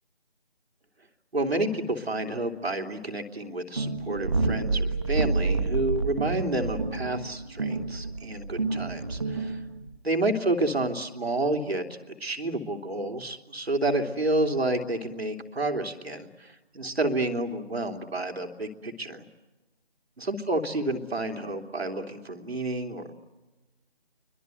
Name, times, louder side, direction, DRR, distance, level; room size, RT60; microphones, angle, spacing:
voice 1, 1.3-9.6 10.0-19.2 20.2-23.2, right 2 dB, 80° right, 4 dB, 3.3 m, -29 dB
sound 1, 3.8-10.0, right 3 dB, 30° right, 1.3 m, -29 dB
30.0 x 24.5 x 8.0 m, 1.2 s
figure-of-eight pair, 170°, 31 cm